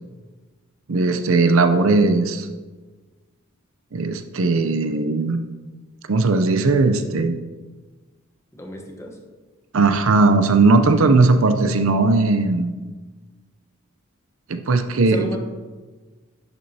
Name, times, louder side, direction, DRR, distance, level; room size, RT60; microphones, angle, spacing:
voice 1, 0.9-2.5 3.9-5.4 6.1-7.4 9.7-12.8 14.5-15.4, right 3 dB, 70° right, 8 dB, 0.6 m, -18 dB
voice 2, 8.5-9.2 15.0-15.4, left 1 dB, 15° left, 1 dB, 1.0 m, -33 dB
10.5 x 6.2 x 2.8 m, 1.3 s
head